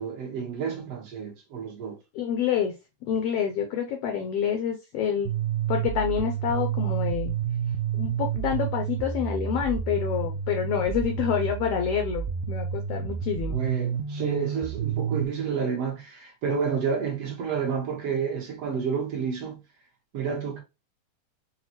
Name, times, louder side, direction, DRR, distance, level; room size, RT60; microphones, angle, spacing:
voice 1, 0.0-2.0 13.5-19.6 20.1-20.6, right 6 dB, 65° right, 1.7 m, -30 dB
voice 2, 2.1-2.7 3.1-5.3 5.7-7.3 8.0-13.6, left 8 dB, 90° left, 1.3 m, -27 dB
sound 1, 5.3-15.3, right 8 dB, 90° right, 2.1 m, -30 dB
5.9 x 2.1 x 2.8 m
omnidirectional pair, 3.5 m